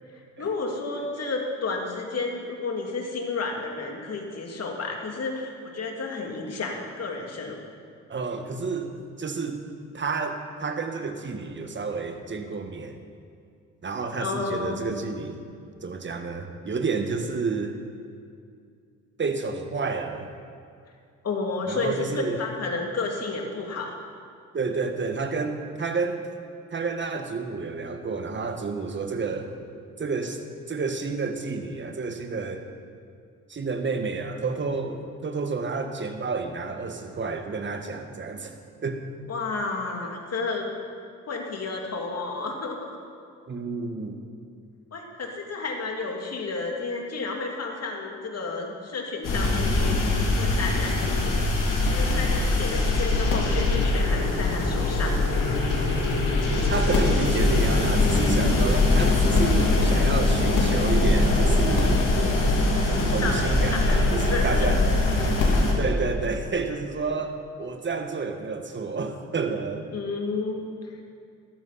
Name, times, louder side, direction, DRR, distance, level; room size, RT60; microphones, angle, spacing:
voice 1, 0.4-7.6 14.2-14.8 21.2-22.1 22.4-23.9 39.3-40.7 41.2-43.0 44.9-50.1 50.4-51.4 51.9-55.3 63.2-64.0 64.3-64.7 69.9-71.0, left 3 dB, 45° left, 1 dB, 2.7 m, -31 dB
voice 2, 8.1-9.6 9.9-13.0 13.8-15.4 15.8-17.8 19.2-20.3 21.7-22.4 24.5-26.3 26.7-29.6 30.0-30.4 30.7-32.7 33.5-38.5 38.8-39.1 43.5-44.2 56.7-62.0 63.1-64.9 65.8-69.9, right 4 dB, 30° right, 6 dB, 1.6 m, -30 dB
sound 1, 49.2-65.7, left 2 dB, 60° left, 3.3 m, -22 dB
14.0 x 12.0 x 4.3 m, 2.4 s
hypercardioid pair, 60°, 35 cm